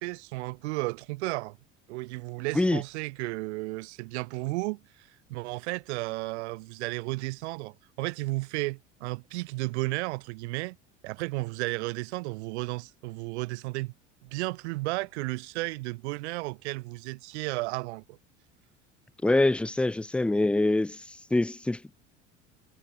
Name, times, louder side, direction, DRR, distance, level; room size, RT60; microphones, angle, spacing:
voice 1, 0.0-1.6 1.9-10.8 11.0-13.9 14.2-18.2, right 23 dB, 60° right, 1.7 m, -33 dB
voice 2, 19.2-21.8, left 2 dB, 5° left, 0.5 m, -25 dB
figure-of-eight pair, 65°, 37 cm